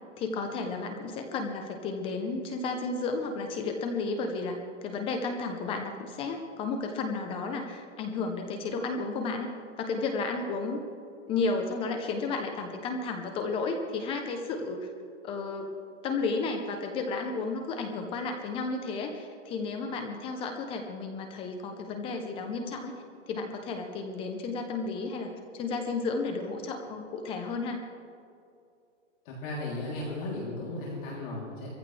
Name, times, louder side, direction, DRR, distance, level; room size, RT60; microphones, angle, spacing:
voice 1, 0.2-4.6 4.8-9.5 9.8-10.8 11.3-14.9 15.2-15.7 16.0-22.9 23.3-27.8, left 4 dB, 15° left, 5 dB, 0.7 m, -32 dB
voice 2, 29.2-31.7, left 2 dB, 45° left, -5 dB, 3.4 m, -35 dB
21.5 x 15.0 x 3.4 m, 2.4 s
hypercardioid pair, 155°, 37 cm